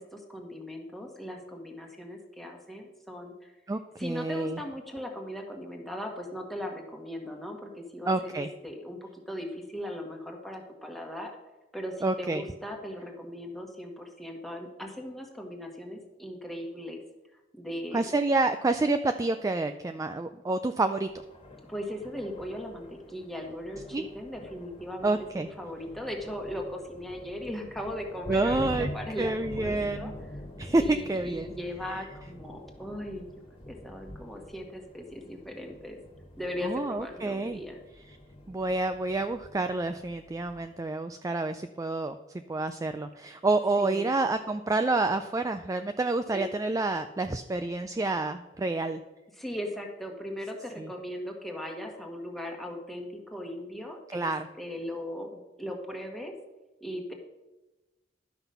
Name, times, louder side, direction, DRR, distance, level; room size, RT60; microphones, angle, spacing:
voice 1, 0.0-3.5 4.0-11.3 11.7-17.0 17.5-18.1 21.7-30.1 30.8-33.3 33.7-36.0 36.4-37.8 43.8-44.1 46.3-46.4 49.4-54.3 54.6-56.3 56.8-57.1, left 1 dB, ahead, 1 dB, 1.5 m, -38 dB
voice 2, 3.7-4.6 8.1-8.5 12.0-12.4 17.9-21.1 23.9-24.0 25.0-25.5 28.3-28.9 29.2-30.1 30.6-31.5 36.6-37.6 38.5-42.2 42.5-49.0 50.8-50.9 54.1-54.5, right 2 dB, 15° right, 8 dB, 0.3 m, -28 dB
Thunder, 21.1-40.8, left 1 dB, 30° left, 1.7 m, -45 dB
11.5 x 6.0 x 5.6 m, 1.1 s
head